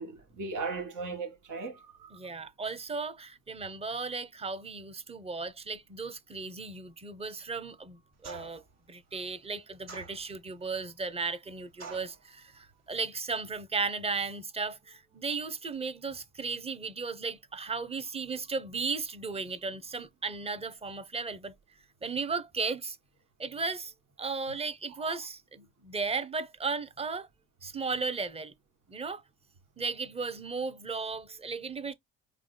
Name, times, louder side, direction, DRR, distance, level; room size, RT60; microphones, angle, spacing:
voice 1, 0.0-2.2 25.0-25.1, right 4 dB, 70° right, 1.9 m, -37 dB
voice 2, 2.1-8.6 8.9-21.5 22.0-23.0 23.4-23.9 24.2-27.3 27.6-28.5 28.9-29.2 29.8-31.9, right 4 dB, 20° right, 0.8 m, -35 dB
sound 1, 8.2-8.7 9.9-10.5 11.8-12.2, right 5 dB, 55° right, 1.5 m, -45 dB
4.8 x 3.6 x 2.2 m
supercardioid pair, 75°, 32 cm